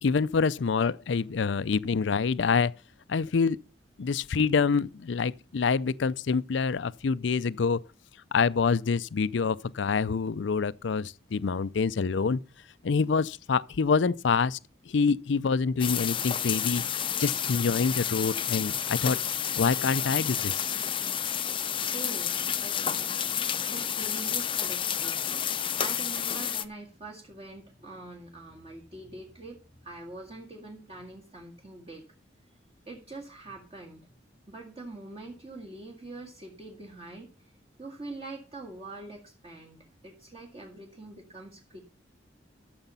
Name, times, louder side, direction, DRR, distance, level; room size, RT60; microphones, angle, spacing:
voice 1, 0.0-2.7 3.1-3.6 4.0-7.8 8.3-12.4 12.8-14.6 14.9-16.8 17.2-19.2 19.6-20.7, left 5 dB, 75° left, 0.5 m, -26 dB
sound 1, 15.8-26.6, left 9 dB, 30° left, 0.6 m, -30 dB
voice 2, 21.9-22.3 22.6-22.8 23.7-25.3 25.8-32.0 32.9-34.0 34.5-37.5 37.8-41.8, right 2 dB, 30° right, 2.0 m, -44 dB
13.0 x 7.0 x 5.5 m
head